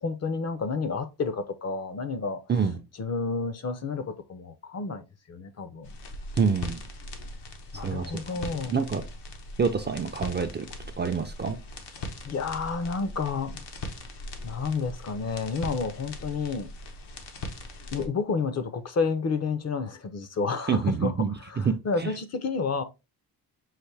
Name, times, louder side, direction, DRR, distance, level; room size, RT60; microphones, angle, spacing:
voice 1, 0.0-2.4 3.0-5.9 7.7-8.8 12.2-13.6 14.4-16.7 17.9-21.1 21.5-22.8, left 4 dB, 40° left, 0.6 m, -30 dB
sound 1, 5.8-18.1, left 2 dB, 85° left, 1.0 m, -40 dB
voice 2, 6.4-6.8 7.8-8.4 8.6-9.0 9.6-10.7 11.0-11.6 20.7-22.1, right 6 dB, 30° right, 0.4 m, -27 dB
5.7 x 2.5 x 3.2 m
wide cardioid pair, 125°, 39 cm